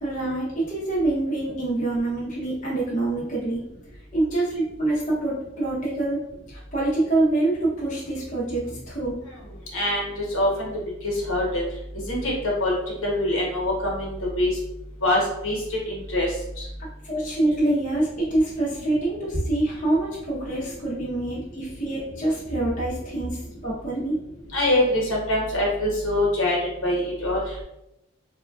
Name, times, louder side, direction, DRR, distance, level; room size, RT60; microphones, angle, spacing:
voice 1, 0.0-3.6 4.1-6.2 6.5-9.2 17.0-24.2, right 2 dB, 35° left, -7 dB, 0.7 m, -25 dB
voice 2, 9.7-10.7 11.0-11.6 12.1-12.3 12.6-14.5 15.0-16.3 16.6-16.7 24.5-26.6 26.8-27.4, left 1 dB, 70° left, -4 dB, 1.1 m, -24 dB
3.5 x 2.3 x 2.3 m, 0.86 s
head